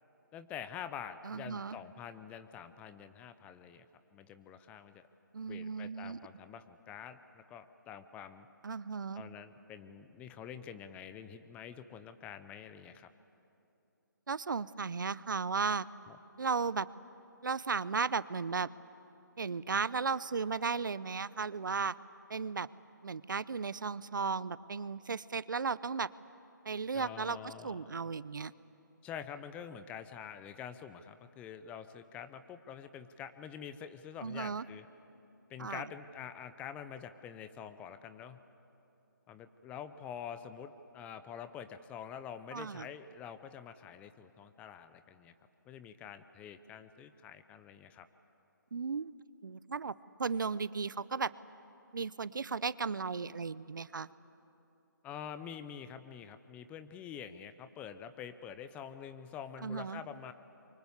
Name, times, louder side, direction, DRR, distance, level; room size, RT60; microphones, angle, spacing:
voice 1, 0.3-3.9 4.1-5.0 5.5-8.5 9.1-13.1 16.1-16.2 26.9-28.0 29.0-34.8 35.5-38.4 39.3-45.3 45.7-48.1 55.0-60.3, left 8 dB, 10° left, 11 dB, 0.7 m, -46 dB
voice 2, 1.2-1.8 5.3-6.2 8.6-9.2 14.3-15.9 16.4-16.9 17.4-18.7 19.4-21.9 22.3-22.7 23.0-26.1 26.7-28.5 34.2-34.6 35.6-35.9 42.5-42.9 48.7-49.1 49.4-49.9 50.2-51.3 51.9-54.1 59.6-60.0, right 5 dB, 70° right, 19 dB, 0.7 m, -35 dB
27.5 x 24.0 x 8.1 m, 2.8 s
figure-of-eight pair, 145°, 11 cm